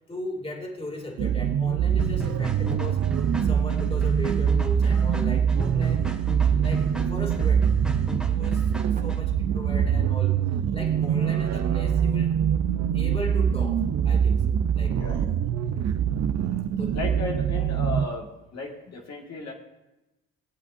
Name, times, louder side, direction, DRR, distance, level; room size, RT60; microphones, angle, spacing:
voice 1, 0.1-3.0 3.4-6.2 6.6-7.7 8.3-8.7 9.0-10.4 10.7-12.4 12.9-15.0 16.8-17.0, left 1 dB, 20° left, 1 dB, 2.6 m, -37 dB
sound 1, 1.2-18.1, right 8 dB, 60° right, 0.7 m, -24 dB
sound 2, 2.0-9.2, right 1 dB, ahead, 2.0 m, -36 dB
sound 3, 2.7-3.3 8.8-9.4 11.3-11.6 12.0-12.2, right 4 dB, 25° right, 0.7 m, -43 dB
voice 2, 14.9-15.4 16.9-19.5, left 3 dB, 60° left, -2 dB, 2.0 m, -35 dB
22.0 x 8.0 x 2.7 m, 1.0 s
cardioid pair, 90°, 30 cm